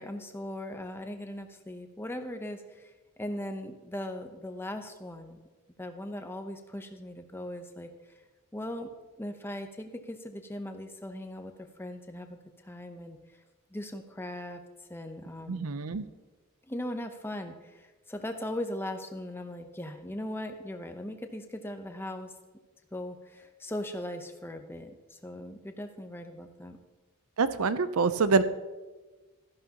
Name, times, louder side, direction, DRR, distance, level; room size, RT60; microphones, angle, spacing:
voice 1, 0.0-2.9 3.2-5.4 5.8-7.9 8.5-8.9 9.2-12.4 12.6-13.2 13.7-14.6 14.9-15.7 16.7-22.3 22.9-26.8, left 1 dB, 10° left, 6 dB, 0.7 m, -39 dB
voice 2, 15.5-16.1 27.4-28.4, right 4 dB, 80° right, 13 dB, 0.6 m, -26 dB
13.5 x 11.0 x 2.9 m, 1.2 s
head